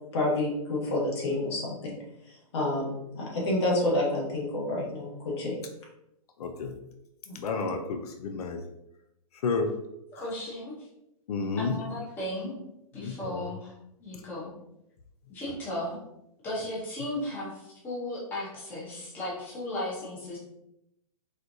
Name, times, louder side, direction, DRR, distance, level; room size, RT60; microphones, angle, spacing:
voice 1, 0.1-1.9 2.5-5.6, left 1 dB, 45° left, -2 dB, 1.2 m, -28 dB
voice 2, 6.4-6.8 7.3-8.6 9.4-9.8 11.3-11.8 13.0-13.4, left 4 dB, 90° left, 6 dB, 0.5 m, -31 dB
voice 3, 10.1-10.9 11.6-12.5 12.9-13.7 14.0-14.5 15.3-16.0 16.4-20.4, left 1 dB, 10° left, -7 dB, 0.7 m, -35 dB
4.3 x 2.4 x 2.6 m, 0.83 s
hypercardioid pair, 170°, 19 cm